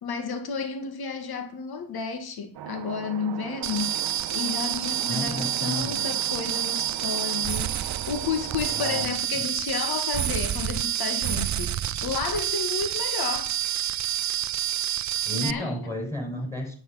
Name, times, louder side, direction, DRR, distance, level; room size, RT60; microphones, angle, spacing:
voice 1, 0.0-13.6 15.3-15.8, left 5 dB, 70° left, 2.1 m, -32 dB
sound 1, 2.5-9.1, right 11 dB, 75° right, 0.9 m, -39 dB
sound 2, 3.6-15.5, right 11 dB, 45° right, 0.6 m, -28 dB
voice 2, 5.1-6.1 8.7-9.5 15.2-16.7, equal, 5° left, 6.7 m, -33 dB
9.5 x 8.3 x 5.9 m
cardioid pair, 75°, 39 cm